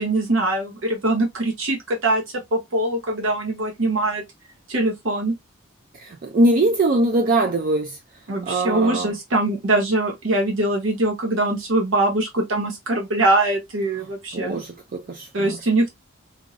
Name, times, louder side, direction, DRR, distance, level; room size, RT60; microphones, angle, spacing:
voice 1, 0.0-4.2 4.7-5.3 8.3-14.6 15.3-15.9, right 2 dB, 75° right, 0.8 m, -22 dB
voice 2, 5.9-9.1 14.3-15.6, right 2 dB, 45° right, 0.4 m, -22 dB
3.0 x 2.5 x 2.5 m
head